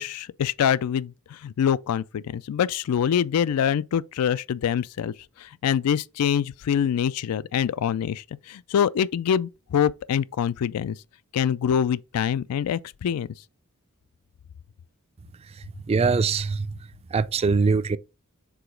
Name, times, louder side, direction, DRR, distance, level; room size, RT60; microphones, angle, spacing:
voice 1, 0.0-11.0 11.3-13.3, left 8 dB, 85° left, 0.3 m, -25 dB
voice 2, 15.9-16.7 17.1-18.0, right 4 dB, 25° right, 0.3 m, -22 dB
4.8 x 3.9 x 5.0 m
head